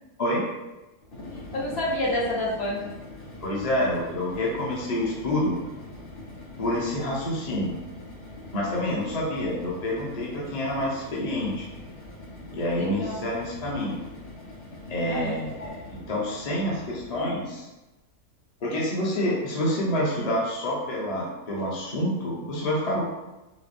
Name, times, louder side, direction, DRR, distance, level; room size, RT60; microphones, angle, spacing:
sound 1, 1.0-17.4, left 1 dB, 75° left, 1.8 m, -43 dB
voice 1, 1.5-2.9 12.8-13.1 15.1-15.3, left 1 dB, 55° left, -5 dB, 1.0 m, -28 dB
voice 2, 3.4-5.6 6.6-7.7 8.5-11.6 12.5-14.0 14.9-17.7 18.6-23.0, left 1 dB, 35° left, -4 dB, 0.7 m, -27 dB
4.9 x 2.0 x 3.3 m, 1.0 s
omnidirectional pair, 1.4 m